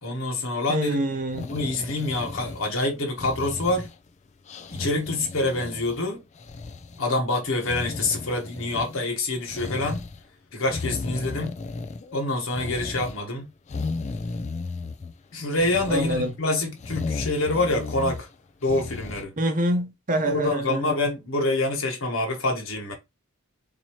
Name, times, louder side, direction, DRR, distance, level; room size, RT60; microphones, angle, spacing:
voice 1, 0.0-1.0 1.4-3.9 4.7-6.2 7.0-10.0 10.5-11.6 12.1-13.5 15.3-18.3 18.6-19.4 20.2-22.9, left 2 dB, 65° left, 1.5 m, -26 dB
voice 2, 0.7-1.5 15.9-16.3 19.4-21.0, right 1 dB, 40° right, 0.7 m, -26 dB
sound 1, 1.2-2.8 3.2-4.1 4.5-6.0 6.3-7.0 7.6-9.1 9.5-10.2 10.6-12.2 12.5-13.2 13.7-15.1 15.5-16.3 16.8-18.3 18.7-19.2, left 3 dB, 35° left, 0.4 m, -34 dB
4.3 x 2.8 x 3.0 m
head